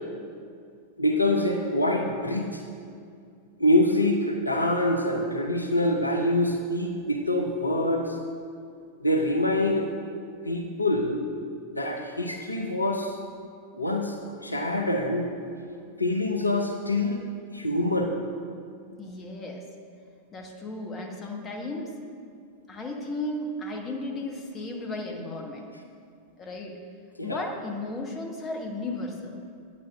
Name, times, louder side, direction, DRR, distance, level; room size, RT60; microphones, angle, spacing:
voice 1, 1.0-2.6 3.6-8.2 9.0-9.9 10.4-11.2 11.7-13.2 13.7-14.2 14.4-15.3 16.0-17.2 17.5-18.1 27.2-27.5, left 1 dB, 85° left, 2 dB, 0.6 m, -25 dB
voice 2, 19.0-19.6 20.3-21.9 22.7-25.7 26.4-26.8 27.2-29.4, left 2 dB, 25° left, 1 dB, 1.2 m, -34 dB
8.9 x 4.3 x 6.6 m, 2.3 s
figure-of-eight pair, 90°, 0 cm